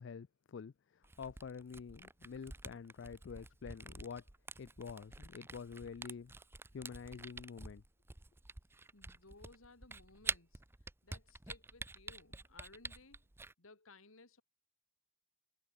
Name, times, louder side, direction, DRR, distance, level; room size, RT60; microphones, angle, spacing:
voice 1, 0.0-4.2 4.6-6.3 6.7-7.8, left 6 dB, 55° left, 0.4 m, -48 dB
Camera, 1.0-13.5, right 3 dB, 10° right, 0.5 m, -47 dB
voice 2, 8.9-10.6 11.0-13.3 13.6-14.4, left 3 dB, 75° left, 2.4 m, -60 dB
head